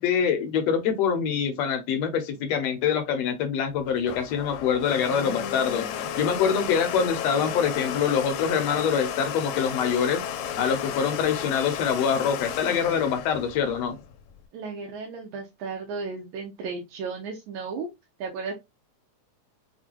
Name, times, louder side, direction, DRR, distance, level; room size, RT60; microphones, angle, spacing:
voice 1, 0.0-5.9 6.2-10.2 10.6-14.0, left 7 dB, 70° left, 1.7 m, -25 dB
Domestic sounds home sounds, 3.7-14.4, left 8 dB, 90° left, 2.0 m, -33 dB
voice 2, 14.5-17.9 18.2-18.5, right 4 dB, 85° right, 2.2 m, -34 dB
6.2 x 2.3 x 2.9 m
omnidirectional pair, 3.3 m